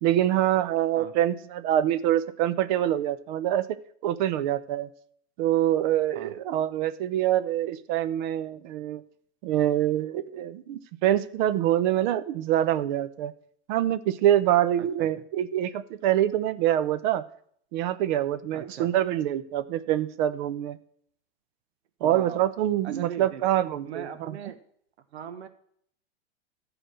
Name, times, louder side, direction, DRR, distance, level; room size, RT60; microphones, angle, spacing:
voice 1, 0.0-3.7 4.0-4.9 5.4-9.0 9.4-13.3 13.7-17.2 17.7-20.8 22.0-24.4, right 12 dB, 45° right, 14 dB, 0.7 m, -25 dB
voice 2, 14.8-15.1 18.5-18.9 22.0-22.4 22.8-23.4 23.8-24.6 25.1-25.5, right 8 dB, 85° right, 10 dB, 1.1 m, -39 dB
13.5 x 4.9 x 6.3 m, 0.65 s
hypercardioid pair, 130°, 32 cm